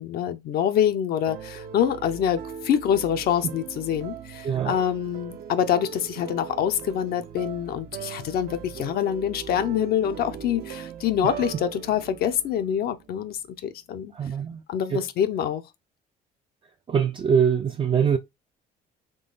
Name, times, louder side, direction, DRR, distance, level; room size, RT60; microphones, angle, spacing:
voice 1, 0.0-14.1 14.7-15.6, left 9 dB, 65° left, 0.6 m, -26 dB
sound 1, 1.3-13.4, right 8 dB, 65° right, 0.7 m, -40 dB
voice 2, 4.4-4.8 14.1-14.6 14.9-15.0 16.9-18.2, right 7 dB, 30° right, 0.4 m, -23 dB
3.8 x 3.1 x 3.8 m
cardioid pair, 110°, 17 cm